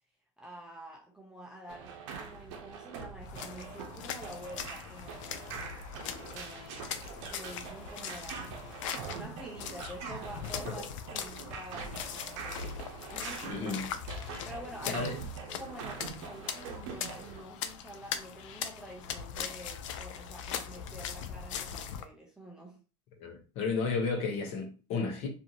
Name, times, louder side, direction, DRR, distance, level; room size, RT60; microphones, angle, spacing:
voice 1, 0.4-5.7 6.3-8.6 9.1-12.8 13.1-13.7 14.4-15.0 15.6-22.8, right 1 dB, 5° right, 0.4 m, -48 dB
sound 1, 1.7-17.4, right 5 dB, 65° right, 0.7 m, -44 dB
sound 2, 3.2-22.1, left 8 dB, 85° left, 0.4 m, -41 dB
voice 2, 13.4-13.9 14.8-15.1 23.2-25.3, left 4 dB, 45° left, 0.8 m, -33 dB
2.6 x 2.5 x 2.8 m
supercardioid pair, 150°, 16 cm